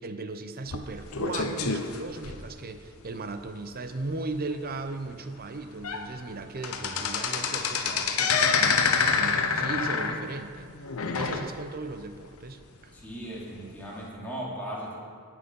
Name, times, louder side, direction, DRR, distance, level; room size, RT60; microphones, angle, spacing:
voice 1, 0.0-8.8 9.1-10.7 11.0-12.9, right 3 dB, 45° right, 8 dB, 0.8 m, -37 dB
sound 1, 0.7-2.9 3.4-3.6 3.9-4.0 4.5-4.6 5.3-5.4 5.7-6.1 6.3-11.9 12.2-12.3 13.1-13.2, left 5 dB, 75° left, 0.9 m, -27 dB
voice 2, 6.7-7.1 12.9-15.0, right 1 dB, 10° left, -6 dB, 3.0 m, -38 dB
18.0 x 6.2 x 5.4 m, 2.1 s
head